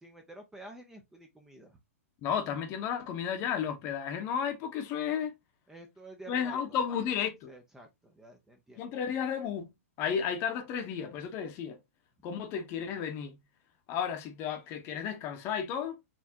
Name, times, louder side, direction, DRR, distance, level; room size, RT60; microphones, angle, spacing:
voice 1, 0.0-1.8 5.7-6.8 7.5-8.8, right 1 dB, 5° right, 0.7 m, -50 dB
voice 2, 2.2-5.3 6.3-7.5 8.8-9.7 10.0-11.8 12.2-13.4 13.9-16.0, left 8 dB, 30° left, 1.0 m, -33 dB
4.4 x 3.5 x 2.8 m
hypercardioid pair, 140°, 8 cm